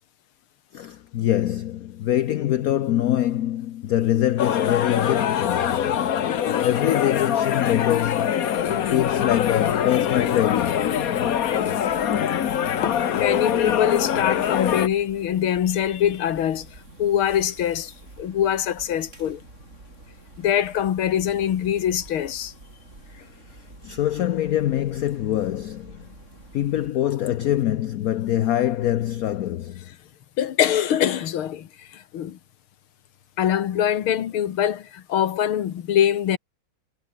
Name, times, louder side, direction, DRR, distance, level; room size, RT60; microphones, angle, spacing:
voice 1, 0.7-6.1 6.4-8.5 8.9-11.0 23.1-26.0 26.5-29.9, left 12 dB, 70° left, 0.8 m, -24 dB
sound 1, 4.4-14.9, left 9 dB, 50° left, 1.3 m, -23 dB
sound 2, 8.6-26.9, right 2 dB, 35° right, 4.7 m, -47 dB
voice 2, 12.8-16.7 17.0-19.4 20.4-22.5 30.4-32.4 33.4-36.4, left 10 dB, 90° left, 2.2 m, -24 dB
omnidirectional pair, 2.2 m